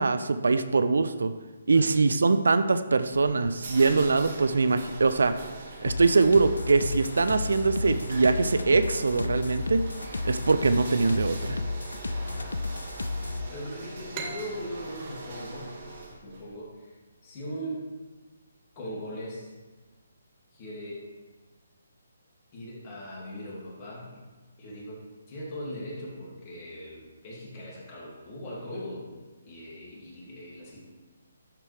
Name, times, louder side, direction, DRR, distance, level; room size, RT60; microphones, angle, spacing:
voice 1, 0.0-1.3 1.7-5.4 5.8-9.8 10.2-11.6, right 3 dB, 80° right, 11 dB, 0.5 m, -23 dB
voice 2, 1.7-2.1 12.3-12.6 13.5-15.7 16.2-17.0 17.2-17.9 18.8-19.5 20.5-21.0 22.5-24.2 24.6-29.0 29.4-30.8, equal, 30° left, -6 dB, 2.5 m, -39 dB
sound 1, 3.6-16.5, right 2 dB, 60° right, 1.8 m, -42 dB
sound 2, 5.9-13.5, left 3 dB, 90° left, 0.4 m, -33 dB
srhoenhut mfp F, 14.1-17.5, right 5 dB, 30° right, 0.8 m, -43 dB
11.5 x 4.5 x 3.4 m, 1.3 s
hypercardioid pair, 150°, 0 cm